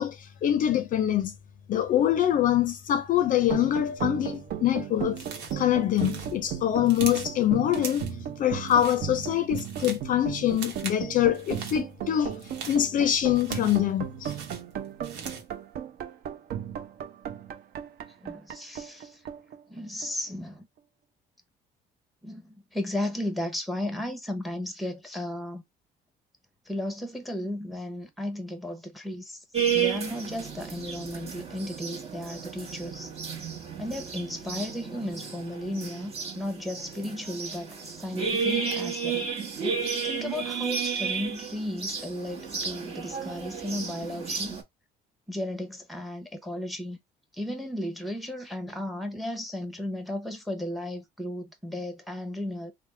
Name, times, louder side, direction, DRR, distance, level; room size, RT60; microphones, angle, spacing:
voice 1, 0.0-1.3 1.7-5.2 5.5-8.1 8.4-12.4 12.7-14.3, left 11 dB, 50° left, 0.4 m, -24 dB
sound 1, 3.4-20.3, right 9 dB, 65° right, 0.6 m, -36 dB
sound 2, 5.1-5.6 5.9-7.4 7.7-8.2 8.6-9.0 9.4-10.1 10.5-11.0 11.3-11.8 12.3-13.9 14.2-15.5, right 5 dB, 90° right, 0.9 m, -40 dB
voice 2, 18.2-19.2 19.7-20.7 22.2-25.6 26.7-29.4 29.7-33.1 33.8-39.3 39.8-44.6 45.3-47.0 47.3-52.7, left 1 dB, ahead, 0.8 m, -35 dB
sound 3, 29.5-44.6, right 6 dB, 35° right, 1.0 m, -32 dB
3.3 x 2.0 x 3.1 m
cardioid pair, 110°, 17 cm